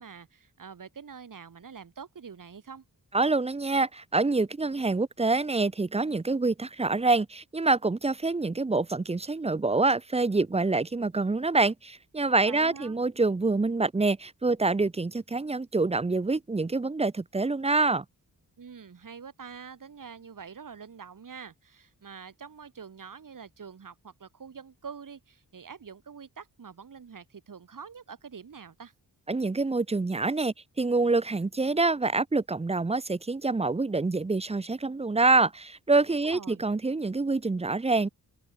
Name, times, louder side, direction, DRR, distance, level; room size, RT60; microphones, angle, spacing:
voice 1, 0.0-2.8 12.4-13.0 18.6-28.9 36.1-36.7, right 6 dB, 55° right, 6.9 m, -45 dB
voice 2, 3.1-18.0 29.3-38.1, right 3 dB, 15° right, 0.6 m, -26 dB
open air
wide cardioid pair, 180°, 38 cm